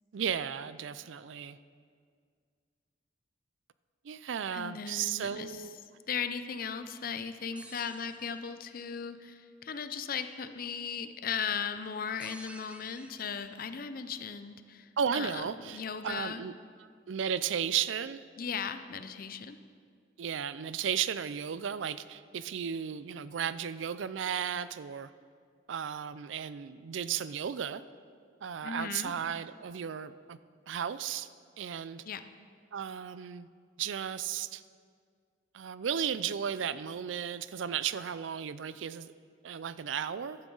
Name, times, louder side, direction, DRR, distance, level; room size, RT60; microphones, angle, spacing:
voice 1, 0.1-1.6 4.0-5.8 15.0-16.5 17.1-18.2 20.2-25.1 25.7-27.8 28.4-30.4 30.7-31.3 31.6-32.0 32.7-33.5 33.8-34.6 35.5-39.1 39.4-40.4, right 8 dB, 80° right, 15 dB, 0.4 m, -34 dB
voice 2, 4.5-5.6 6.1-16.4 18.4-19.6 28.6-29.1 32.0-32.2, left 6 dB, 50° left, 10 dB, 0.6 m, -37 dB
sound 1, 7.6-8.8 12.2-13.7, right 1 dB, 5° right, 0.6 m, -52 dB
14.5 x 12.0 x 3.9 m, 2.1 s
head